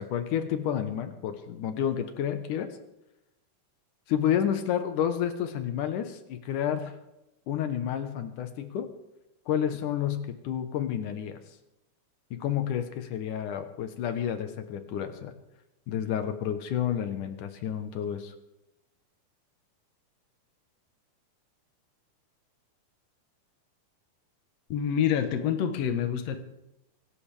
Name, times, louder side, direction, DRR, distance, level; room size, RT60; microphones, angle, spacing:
voice 1, 0.0-2.7 4.1-6.9 7.5-8.9 9.5-11.4 12.3-15.3 15.9-18.3, left 9 dB, 80° left, 8 dB, 2.7 m, -30 dB
voice 2, 24.7-26.4, left 8 dB, 60° left, 7 dB, 2.2 m, -27 dB
24.5 x 12.0 x 3.5 m, 0.90 s
omnidirectional pair, 3.6 m